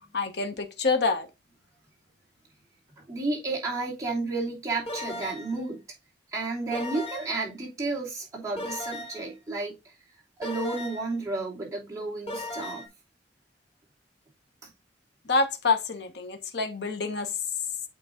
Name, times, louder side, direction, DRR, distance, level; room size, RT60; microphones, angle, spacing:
voice 1, 0.1-1.3 15.3-17.3, left 3 dB, 65° left, 1.0 m, -27 dB
voice 2, 3.1-5.8 6.3-9.9 10.4-12.8, right 3 dB, 20° right, 2.7 m, -32 dB
sound 1, 4.9-5.6 6.7-7.4 8.6-9.3 10.4-11.2 12.3-12.9, left 1 dB, 35° left, 2.0 m, -36 dB
8.5 x 3.1 x 3.7 m
head